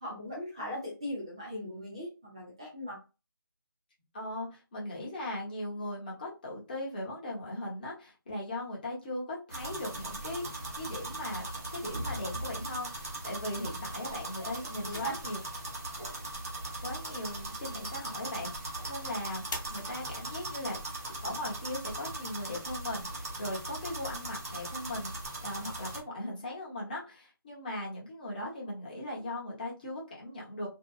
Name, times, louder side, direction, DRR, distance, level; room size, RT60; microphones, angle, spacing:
voice 1, 0.0-3.0 14.4-14.5 14.8-15.2, equal, 15° right, -4 dB, 0.4 m, -39 dB
voice 2, 4.1-10.4 10.8-11.5 11.7-15.4 16.8-20.8 21.2-25.1 25.4-30.7, left 1 dB, 25° left, -4 dB, 0.9 m, -38 dB
sound 1, 9.5-26.0, right 2 dB, 40° right, 0.9 m, -39 dB
sound 2, 14.9-20.3, left 2 dB, 55° left, 1.0 m, -48 dB
2.7 x 2.2 x 2.3 m, 0.30 s
figure-of-eight pair, 165°, 12 cm